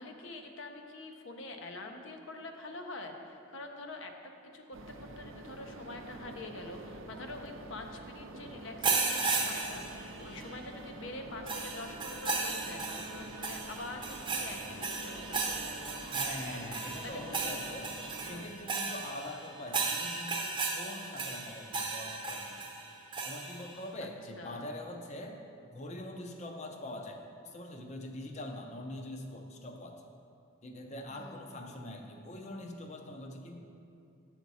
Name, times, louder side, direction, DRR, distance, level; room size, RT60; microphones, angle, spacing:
voice 1, 0.0-4.1 4.5-16.2 17.0-17.5 24.0-24.1 24.4-24.7 31.1-31.6, left 2 dB, 70° left, 4 dB, 0.7 m, -45 dB
sound 1, 4.7-18.5, right 2 dB, 80° right, 0.5 m, -47 dB
sound 2, 8.8-10.5 11.5-23.7, right 4 dB, 25° right, 0.6 m, -35 dB
voice 2, 16.1-22.6 23.3-25.4 25.7-30.0 30.6-33.6, left 1 dB, 35° left, 3 dB, 0.6 m, -43 dB
8.4 x 6.0 x 4.1 m, 2.6 s
head